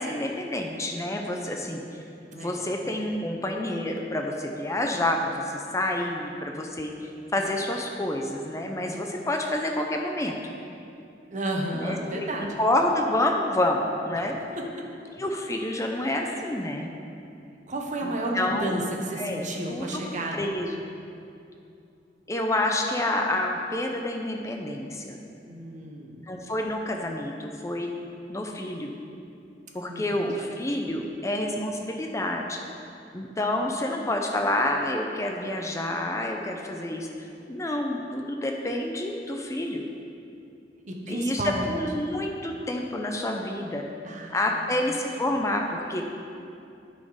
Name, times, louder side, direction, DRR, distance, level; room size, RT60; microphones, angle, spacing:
voice 1, 0.0-1.8 2.3-10.5 11.7-14.3 15.1-16.9 18.0-18.8 19.2-20.0 20.3-20.7 22.3-25.2 26.2-27.9 28.3-28.9 29.7-32.6 33.1-39.8 41.1-43.8 44.3-46.0, left 1 dB, 15° left, 2 dB, 0.5 m, -28 dB
voice 2, 2.3-2.6 11.3-12.5 14.6-14.7 17.7-20.5 25.4-26.2 29.9-30.2 40.9-41.8 44.0-44.6, right 1 dB, 40° right, 0 dB, 1.0 m, -32 dB
11.5 x 4.3 x 4.9 m, 2.6 s
head